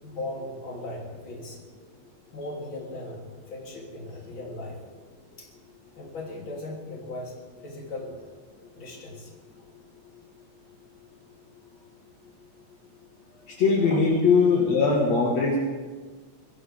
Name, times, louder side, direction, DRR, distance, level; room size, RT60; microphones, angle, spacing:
voice 1, 0.0-1.6 2.3-4.8 5.4-5.5 6.0-7.4 7.6-8.4 8.7-9.3 13.2-13.5 13.9-14.0, left 2 dB, 40° left, -3 dB, 4.0 m, -38 dB
voice 2, 13.6-15.6, left 4 dB, 65° left, -3 dB, 3.0 m, -20 dB
24.0 x 15.0 x 3.6 m, 1.4 s
omnidirectional pair, 3.5 m